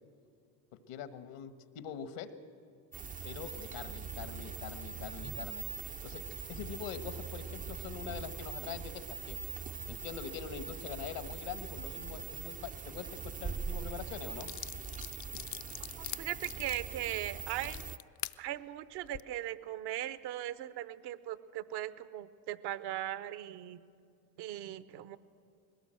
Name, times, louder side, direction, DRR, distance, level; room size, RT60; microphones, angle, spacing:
voice 1, 0.9-2.3 3.2-5.6 6.0-6.2 6.5-9.4 9.9-14.5, left 8 dB, 75° left, 11 dB, 1.4 m, -43 dB
sound 1, 2.9-18.0, right 6 dB, 20° right, 0.4 m, -42 dB
sound 2, 13.9-14.0 14.4-18.4 18.9-19.2, left 12 dB, 45° left, 0.6 m, -43 dB
voice 2, 16.0-18.0 18.4-23.8 24.4-25.2, right 13 dB, 65° right, 15 dB, 0.9 m, -39 dB
20.5 x 17.5 x 7.7 m, 2.3 s
supercardioid pair, 75°, 44 cm